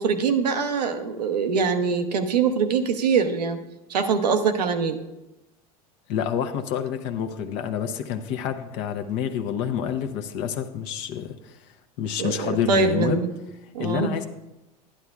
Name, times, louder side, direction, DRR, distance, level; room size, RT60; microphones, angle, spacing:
voice 1, 0.0-3.6 3.9-5.0 12.2-13.3 13.7-14.3, right 5 dB, 90° right, 8 dB, 0.8 m, -23 dB
voice 2, 6.1-11.6 12.0-13.2 13.8-14.3, left 8 dB, 60° left, 6 dB, 0.8 m, -28 dB
11.5 x 10.0 x 2.4 m, 0.97 s
hypercardioid pair, 90°, 20 cm